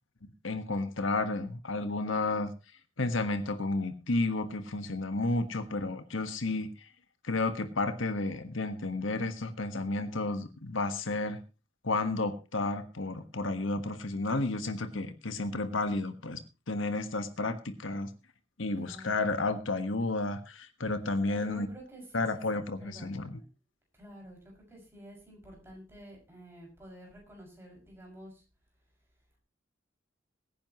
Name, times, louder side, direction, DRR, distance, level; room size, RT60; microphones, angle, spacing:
voice 1, 0.4-2.5 3.0-6.9 7.2-11.4 11.8-18.1 18.6-21.7 22.1-23.4, left 2 dB, 80° left, 9 dB, 1.4 m, -32 dB
voice 2, 18.8-19.4 21.2-22.5 22.8-23.5 23.9-28.4, right 1 dB, 10° right, -1 dB, 6.1 m, -50 dB
23.0 x 10.0 x 3.0 m, 0.30 s
head